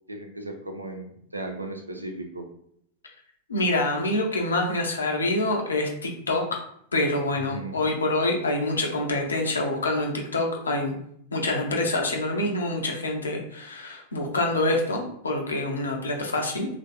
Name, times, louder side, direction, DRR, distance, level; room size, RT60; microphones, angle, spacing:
voice 1, 0.1-2.5 7.3-7.8, right 2 dB, 85° right, 4 dB, 0.5 m, -36 dB
voice 2, 3.5-6.6 6.9-11.0 11.3-16.7, left 2 dB, 75° left, 1 dB, 0.6 m, -26 dB
3.2 x 2.5 x 2.4 m, 0.69 s
figure-of-eight pair, 90°, 0 cm